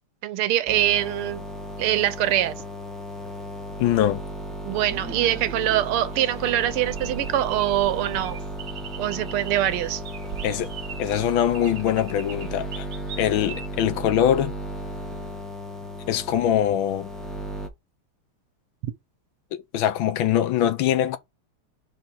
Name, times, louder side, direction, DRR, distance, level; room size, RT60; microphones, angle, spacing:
voice 1, 0.2-1.4 1.8-2.6 4.6-8.4 9.0-10.0, right 13 dB, 85° right, 1.6 m, -23 dB
sound 1, 0.7-17.7, right 1 dB, ahead, 1.1 m, -35 dB
voice 2, 3.8-4.2 10.4-10.7 11.0-12.9 13.2-14.5 16.1-17.1 19.5-21.2, left 11 dB, 75° left, 1.4 m, -23 dB
sound 2, 4.8-13.7, right 7 dB, 50° right, 1.3 m, -40 dB
5.0 x 4.6 x 4.5 m
omnidirectional pair, 2.4 m